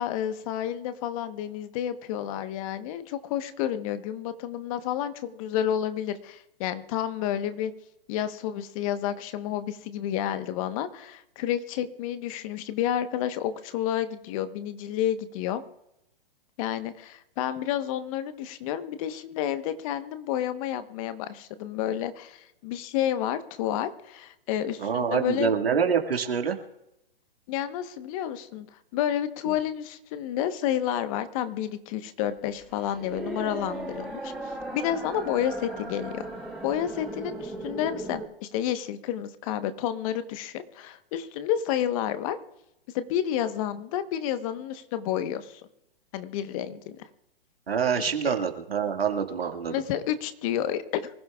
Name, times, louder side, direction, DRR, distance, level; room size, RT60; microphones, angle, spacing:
voice 1, 0.0-7.7 8.1-15.6 16.6-25.6 27.5-28.7 28.9-36.3 36.6-38.2 38.5-42.4 42.9-45.6 46.1-47.1 48.0-48.3 49.7-51.1, left 10 dB, 35° left, 11 dB, 1.1 m, -30 dB
voice 2, 24.8-26.6 47.7-49.8, right 7 dB, 80° right, 4 dB, 2.0 m, -26 dB
sound 1, 32.2-38.3, right 2 dB, ahead, 3.2 m, -37 dB
25.0 x 15.5 x 2.4 m, 0.85 s
hypercardioid pair, 125°, 30 cm